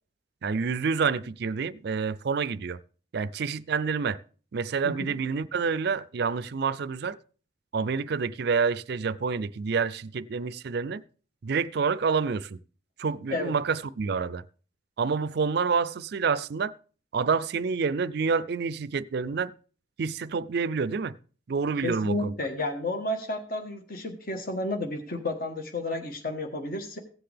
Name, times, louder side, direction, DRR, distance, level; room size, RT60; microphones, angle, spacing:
voice 1, 0.4-2.8 3.1-4.2 4.5-7.2 7.7-11.0 11.4-12.6 13.0-14.4 15.0-16.7 17.1-19.5 20.0-21.2 21.5-22.3, right 5 dB, 60° right, 0.4 m, -28 dB
voice 2, 21.8-27.0, left 2 dB, 50° left, 1.3 m, -32 dB
15.5 x 7.8 x 3.4 m
head